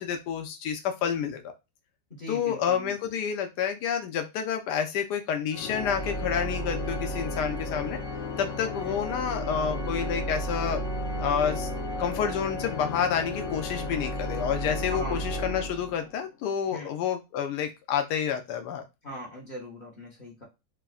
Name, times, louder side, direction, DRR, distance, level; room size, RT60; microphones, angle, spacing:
voice 1, 0.0-1.4 2.3-8.0 8.4-10.8 11.2-11.7 12.0-18.8, left 8 dB, 85° left, 6 dB, 1.2 m, -29 dB
voice 2, 2.1-2.9 8.8-9.0 14.9-15.2 16.7-16.9 19.0-20.4, left 1 dB, 35° left, -3 dB, 0.9 m, -40 dB
Organ, 5.5-16.3, left 1 dB, 60° left, 1.0 m, -33 dB
3.4 x 2.1 x 2.3 m, 0.25 s
omnidirectional pair, 1.7 m